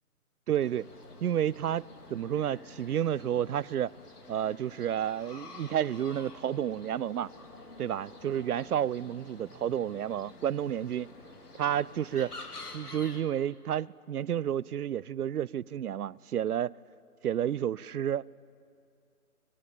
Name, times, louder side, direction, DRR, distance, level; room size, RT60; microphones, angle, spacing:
voice 1, 0.5-0.9 1.2-3.9 4.3-7.3 7.8-11.1 11.6-12.3 12.7-16.8 17.2-18.2, right 10 dB, 75° right, 0.6 m, -31 dB
sound 1, 0.6-13.2, left 2 dB, 85° left, 3.3 m, -49 dB
22.5 x 21.5 x 8.6 m
figure-of-eight pair, 150°, 45 cm